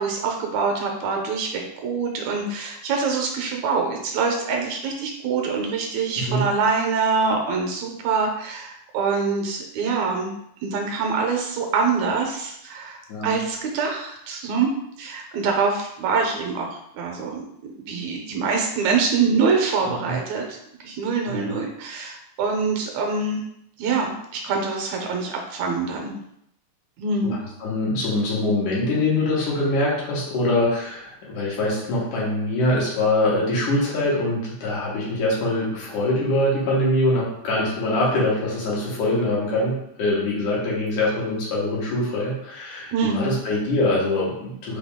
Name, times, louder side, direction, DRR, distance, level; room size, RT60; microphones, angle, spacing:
voice 1, 0.0-10.3 10.6-14.7 15.0-16.7 16.9-23.4 23.8-26.1 27.0-27.3 42.9-43.3, right 4 dB, 75° right, 1 dB, 1.8 m, -25 dB
voice 2, 27.2-44.8, left 1 dB, 85° left, -5 dB, 2.8 m, -23 dB
5.7 x 2.3 x 3.5 m, 0.77 s
omnidirectional pair, 3.5 m